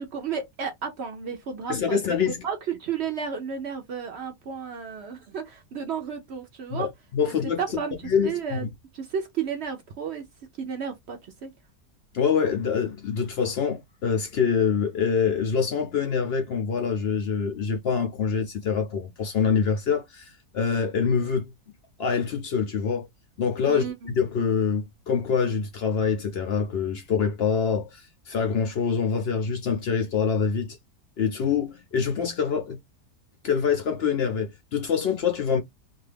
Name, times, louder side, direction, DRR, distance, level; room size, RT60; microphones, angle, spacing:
voice 1, 0.0-6.9 7.3-7.9 8.2-8.6 8.9-10.2 10.6-11.5 23.6-24.2, right 6 dB, 70° right, 0.6 m, -33 dB
voice 2, 1.7-2.4 6.7-7.6 8.0-8.7 12.1-21.5 22.0-23.1 23.4-30.8 31.2-32.8 33.4-35.6, left 6 dB, 70° left, 0.5 m, -25 dB
2.6 x 2.4 x 3.3 m
omnidirectional pair, 1.7 m